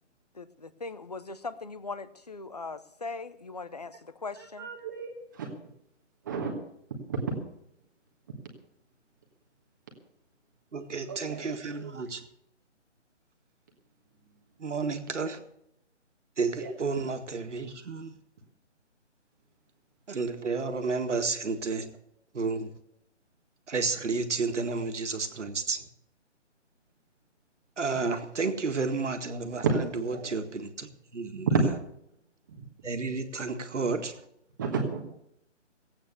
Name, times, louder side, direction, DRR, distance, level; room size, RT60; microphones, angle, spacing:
voice 1, 0.3-4.7, left 3 dB, 35° left, 14 dB, 0.6 m, -40 dB
voice 2, 4.6-5.5 6.2-6.5 7.1-7.2 11.1-11.9 16.6-16.7 29.6-30.2 31.5-31.6 32.5-32.6 34.6-35.0, right 4 dB, 15° right, 2 dB, 1.4 m, -30 dB
voice 3, 10.7-12.2 14.6-15.4 16.4-18.1 20.1-21.9 22.3-22.7 23.7-25.8 27.8-29.6 30.2-30.9 31.1-31.5 32.8-34.1, right 4 dB, 70° right, 6 dB, 1.9 m, -31 dB
16.0 x 8.7 x 6.8 m, 0.76 s
hypercardioid pair, 175°, 37 cm